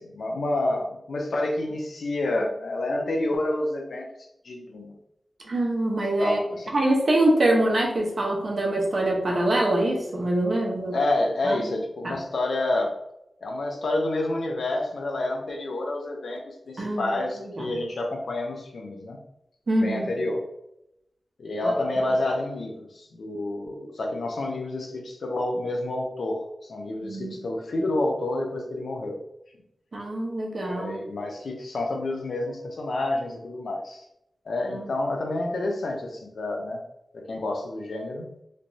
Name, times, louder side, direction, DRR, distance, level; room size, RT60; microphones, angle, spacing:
voice 1, 0.0-4.1 4.4-4.9 6.2-6.7 10.9-12.9 13.4-19.2 19.8-20.5 21.4-29.2 30.6-34.0 34.4-36.8 37.1-38.3, left 2 dB, 85° left, 1 dB, 0.7 m, -29 dB
voice 2, 5.4-6.4 6.7-11.0 11.4-11.8 12.0-12.2 16.8-17.7 19.7-20.1 21.6-21.7 27.0-27.4 29.9-31.0 34.7-34.8, right 1 dB, 60° right, -1 dB, 1.0 m, -24 dB
3.3 x 3.0 x 2.7 m, 0.81 s
cardioid pair, 60°, 0 cm